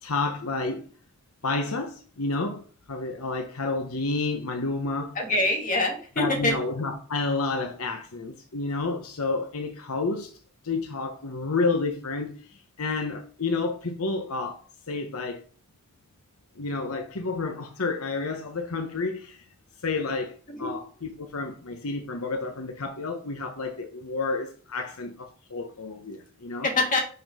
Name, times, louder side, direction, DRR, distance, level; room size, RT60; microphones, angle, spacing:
voice 1, 0.0-0.9 1.4-2.6 2.9-5.2 6.2-10.3 10.6-15.4 16.6-19.4 19.8-26.7, left 3 dB, 80° left, 1.0 m, -30 dB
voice 2, 5.2-6.6 20.5-20.7 26.6-27.0, left 2 dB, 35° left, 2.4 m, -25 dB
5.8 x 5.4 x 5.4 m
head